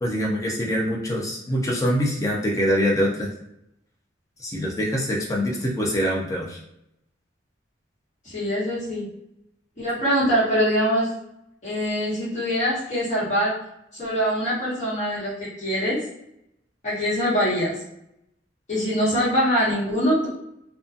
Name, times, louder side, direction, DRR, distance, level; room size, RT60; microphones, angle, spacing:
voice 1, 0.0-3.3 4.4-6.6, equal, 15° left, -2 dB, 0.6 m, -24 dB
voice 2, 8.2-9.1 9.8-11.1 11.6-13.6 13.9-16.0 16.8-17.7 18.7-20.3, equal, 40° left, -9 dB, 1.2 m, -23 dB
2.6 x 2.3 x 2.5 m, 0.80 s
head